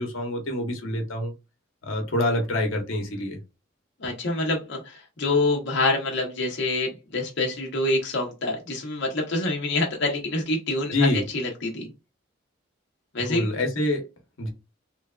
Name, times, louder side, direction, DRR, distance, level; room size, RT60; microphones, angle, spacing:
voice 1, 0.0-1.3 1.8-3.4 10.9-11.2 13.3-14.0 14.4-14.5, left 1 dB, 90° left, 3 dB, 0.9 m, -26 dB
voice 2, 4.0-10.9 11.3-11.9 13.1-13.5, left 2 dB, 60° left, 0 dB, 0.7 m, -26 dB
3.2 x 2.3 x 2.2 m, 0.26 s
head